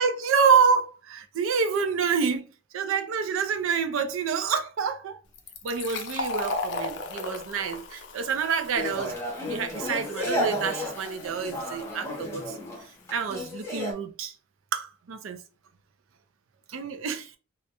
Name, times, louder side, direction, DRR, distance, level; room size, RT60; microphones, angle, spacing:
voice 1, 0.0-2.5 2.7-5.2 5.6-12.6 13.1-14.3 14.7-15.4 16.7-17.4, right 6 dB, 85° right, 0.4 m, -27 dB
Fill (with liquid), 5.3-12.7, left 3 dB, 60° left, 0.4 m, -37 dB
sound 1, 8.7-13.9, left 1 dB, 15° left, 0.6 m, -32 dB
2.3 x 2.1 x 2.8 m
head